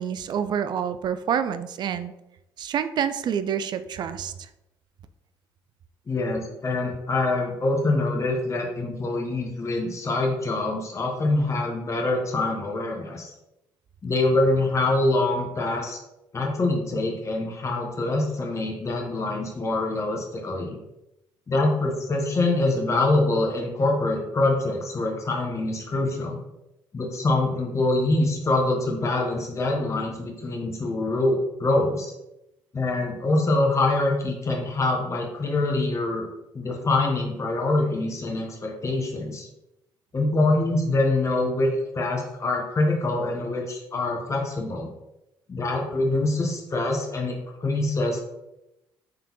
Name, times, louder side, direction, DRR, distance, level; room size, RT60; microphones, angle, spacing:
voice 1, 0.0-2.1 2.6-4.3, right 8 dB, 50° right, 12 dB, 0.3 m, -27 dB
voice 2, 6.1-13.3 14.0-16.0 16.3-20.8 21.5-26.4 26.9-32.1 32.7-36.3 36.5-39.5 40.1-41.7 41.9-44.9 45.5-48.3, left 2 dB, 30° left, 1 dB, 0.9 m, -25 dB
3.7 x 3.6 x 2.9 m, 0.90 s
hypercardioid pair, 60°, 9 cm